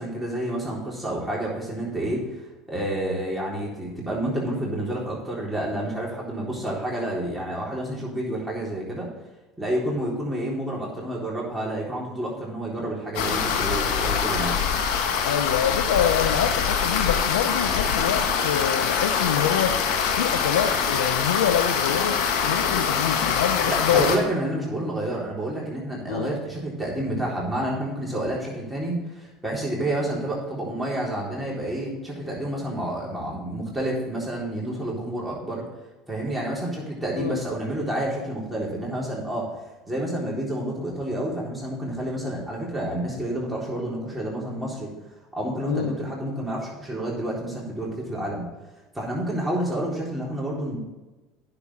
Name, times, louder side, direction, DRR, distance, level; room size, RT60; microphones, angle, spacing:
voice 1, 0.0-2.3 2.7-9.1 9.6-14.6 23.7-35.6 36.1-39.5 39.9-44.9 45.4-48.4 48.9-50.8, right 1 dB, 5° right, -5 dB, 3.9 m, -29 dB
sound 1, 13.1-24.2, left 7 dB, 70° left, 1.5 m, -24 dB
voice 2, 15.2-22.2 22.4-24.1 26.1-26.4 37.2-37.4 45.6-45.9, left 9 dB, 90° left, 6 dB, 0.7 m, -26 dB
9.7 x 6.9 x 5.7 m, 1.2 s
hypercardioid pair, 90°, 0 cm